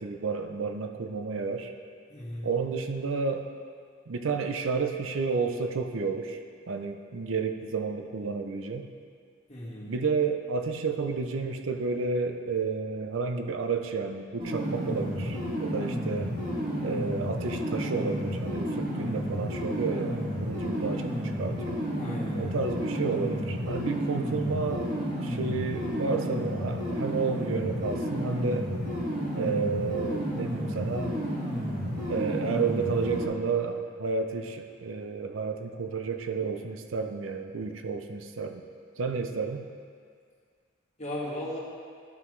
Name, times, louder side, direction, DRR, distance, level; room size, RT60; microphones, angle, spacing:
voice 1, 0.0-1.7 2.4-3.4 4.1-6.4 6.7-8.8 9.8-16.3 16.8-21.1 21.4-21.7 22.3-24.9 25.2-28.7 29.3-31.1 32.1-38.6 39.0-39.6, right 4 dB, 80° right, 6 dB, 0.5 m, -31 dB
voice 2, 2.1-2.5 9.5-9.9 22.0-22.5 41.0-41.6, left 1 dB, 35° left, -5 dB, 1.5 m, -36 dB
sound 1, 14.4-33.3, equal, 45° right, 1.8 m, -31 dB
12.0 x 5.7 x 3.1 m, 2.1 s
head